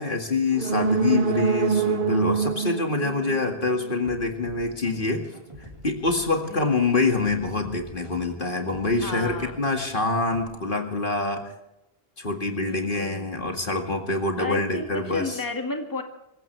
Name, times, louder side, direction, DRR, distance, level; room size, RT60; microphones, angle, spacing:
voice 1, 0.0-5.2 5.8-11.4 12.2-15.4, left 3 dB, 55° left, 3 dB, 2.3 m, -25 dB
sound 1, 0.5-4.2 4.6-4.7, right 6 dB, 55° right, 1.2 m, -25 dB
sound 2, 4.0-10.4, equal, 30° right, 4.2 m, -46 dB
voice 2, 9.0-9.5 12.6-13.2 14.4-16.0, left 2 dB, 20° left, 3 dB, 2.1 m, -33 dB
26.5 x 15.5 x 3.4 m, 0.89 s
omnidirectional pair, 1.0 m